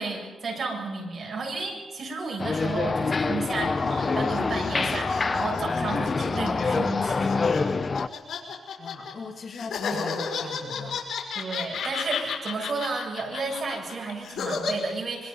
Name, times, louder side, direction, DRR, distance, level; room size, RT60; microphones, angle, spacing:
voice 1, 0.0-7.7 11.3-15.3, right 3 dB, 40° right, 0 dB, 7.6 m, -32 dB
sound 1, 2.4-8.1, left 4 dB, 30° left, 0.6 m, -26 dB
sound 2, 3.7-9.1 9.5-14.7, left 6 dB, 85° left, 5.1 m, -33 dB
voice 2, 8.8-11.0, left 4 dB, 55° left, 3 dB, 2.7 m, -38 dB
26.0 x 24.5 x 5.5 m, 1.3 s
cardioid pair, 125°, 0 cm